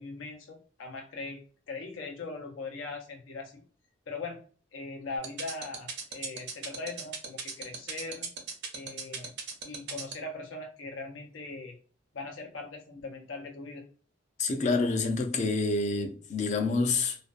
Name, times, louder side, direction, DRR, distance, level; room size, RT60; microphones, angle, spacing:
voice 1, 0.0-1.4 1.7-3.6 4.1-4.4 4.7-8.3 8.7-9.3 9.6-11.7 12.1-13.8, left 3 dB, 90° left, 0.7 m, -40 dB
sound 1, 5.2-10.1, right 6 dB, 60° right, 0.6 m, -36 dB
voice 2, 14.4-17.2, left 3 dB, 40° left, 0.4 m, -27 dB
2.5 x 2.2 x 2.4 m
head